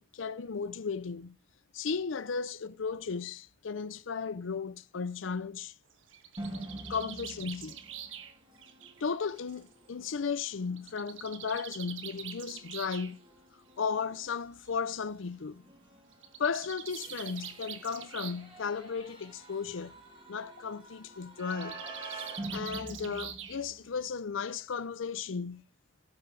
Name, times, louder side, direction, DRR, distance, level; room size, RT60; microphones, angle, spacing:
voice 1, 0.0-1.4 1.7-5.7 6.9-7.8 9.0-13.2 13.8-15.6 16.4-19.9 20.3-21.8 22.5-25.6, left 5 dB, 75° left, 0.5 m, -35 dB
Bird, 5.9-9.7 10.8-13.1 14.2-14.3 14.6-14.7 15.0-15.1 16.1-18.5 18.8-19.3 21.4-23.8, right 9 dB, 75° right, 1.3 m, -45 dB
sound 1, 6.4-24.1, right 2 dB, 25° right, 3.1 m, -47 dB
18.0 x 6.8 x 3.3 m
head